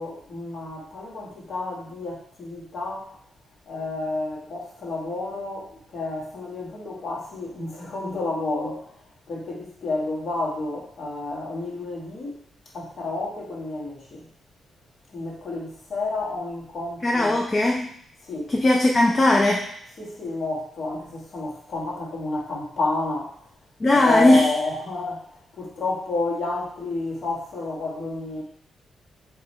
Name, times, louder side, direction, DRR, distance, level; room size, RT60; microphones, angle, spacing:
voice 1, 0.0-3.1 3.7-8.9 9.3-12.4 12.7-14.3 15.1-17.4 18.2-18.5 20.0-23.3 23.9-28.4, left 2 dB, 50° left, -3 dB, 1.2 m, -30 dB
voice 2, 17.0-17.9 18.5-19.7 23.8-24.4, left 1 dB, 25° left, 0 dB, 0.4 m, -18 dB
4.7 x 2.3 x 4.1 m, 0.66 s
wide cardioid pair, 160°, 0 cm